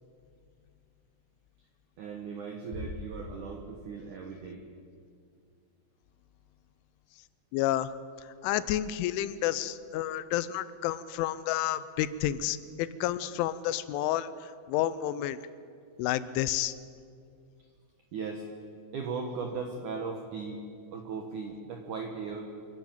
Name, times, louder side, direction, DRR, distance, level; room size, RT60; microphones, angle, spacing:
voice 1, 2.0-4.6 17.6-17.7 18.1-18.5 18.9-20.7 20.9-22.5, right 4 dB, 75° right, 3 dB, 1.8 m, -37 dB
sound 1, 2.7-4.3, left 1 dB, 50° left, 0.8 m, -42 dB
voice 2, 7.5-7.9 8.4-15.4 16.0-16.8, left 12 dB, 85° left, 15 dB, 3.1 m, -30 dB
25.5 x 11.0 x 9.1 m, 2.3 s
omnidirectional pair, 5.5 m